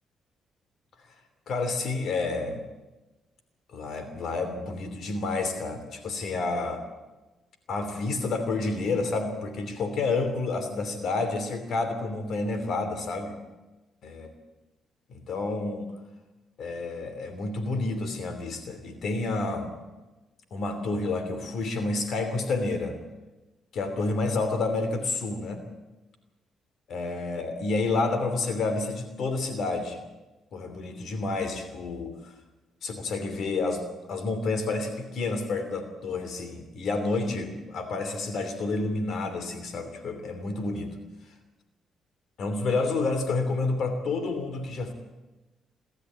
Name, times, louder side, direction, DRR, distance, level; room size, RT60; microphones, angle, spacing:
voice 1, 1.5-2.6 3.7-6.8 7.7-13.4 14.0-14.3 15.1-15.9 16.6-19.7 20.5-23.0 23.7-25.6 26.9-30.0 30.5-32.3 32.8-33.8 34.1-40.9 42.4-44.9, left 3 dB, 65° left, 8 dB, 2.9 m, -29 dB
25.5 x 13.0 x 8.7 m, 1.1 s
cardioid pair, 90°, 0 cm